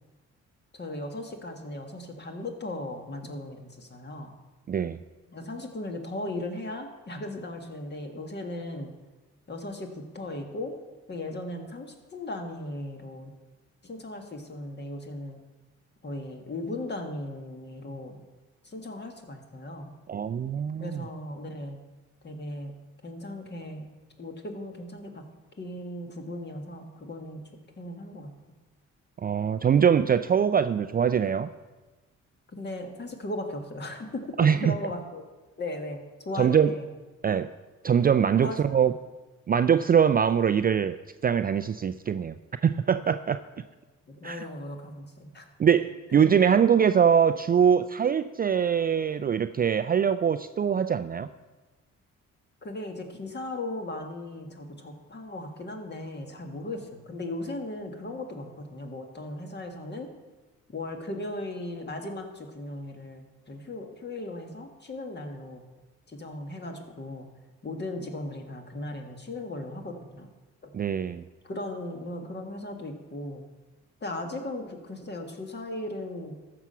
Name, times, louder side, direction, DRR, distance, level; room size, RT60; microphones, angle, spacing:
voice 1, 0.7-4.3 5.3-8.9 9.5-10.8 11.1-13.3 13.8-15.4 16.0-18.2 18.6-19.9 20.8-21.8 22.2-22.7 23.0-23.9 24.2-25.3 25.6-27.4 27.8-28.3 32.5-35.2 35.6-36.9 38.4-38.6 44.1-45.5 46.7-46.8 52.6-60.1 60.7-65.6 66.1-67.3 67.6-70.3 70.6-70.7 71.4-73.5 74.0-76.4, left 1 dB, 35° left, 4 dB, 1.8 m, -37 dB
voice 2, 4.7-5.0 20.1-21.0 29.2-31.5 34.4-34.8 36.3-36.7 37.2-37.5 37.8-38.9 39.5-41.0 41.2-42.3 42.6-43.4 44.2-44.5 45.6-51.3 70.7-71.2, right 7 dB, 30° right, 10 dB, 0.4 m, -23 dB
14.0 x 6.0 x 5.6 m, 1.2 s
cardioid pair, 90°, 30 cm